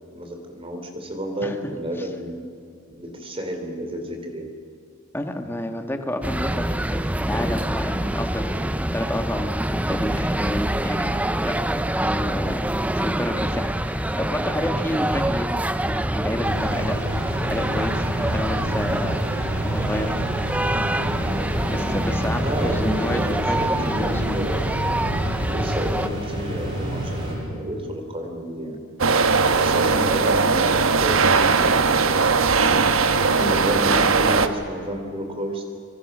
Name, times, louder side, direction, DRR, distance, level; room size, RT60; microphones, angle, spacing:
voice 1, 0.1-2.4 3.0-4.5 22.4-24.7 25.4-28.8 29.6-32.2 33.2-35.6, equal, 25° right, 4 dB, 3.6 m, -30 dB
voice 2, 5.1-11.1 11.4-11.6 12.0-12.7 12.9-19.2 19.5-20.1 21.7-23.2 23.5-23.7 24.1-24.4, left 1 dB, 10° left, 5 dB, 1.6 m, -30 dB
sound 1, 6.2-26.1, right 1 dB, 5° right, 0.6 m, -25 dB
sound 2, 16.4-27.3, right 1 dB, 55° right, 7.9 m, -29 dB
sound 3, 29.0-34.5, right 4 dB, 80° right, 1.2 m, -19 dB
25.5 x 25.0 x 6.2 m, 2.4 s
head